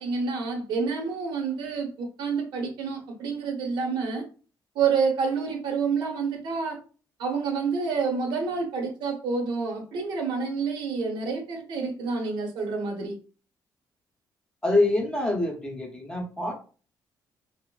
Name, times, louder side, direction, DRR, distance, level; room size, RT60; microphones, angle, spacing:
voice 1, 0.0-4.2 4.7-6.8 7.2-13.1, right 5 dB, 85° right, 0.8 m, -28 dB
voice 2, 14.6-16.5, left 2 dB, 10° left, 0.6 m, -25 dB
3.1 x 2.0 x 2.2 m
cardioid pair, 150°, 8 cm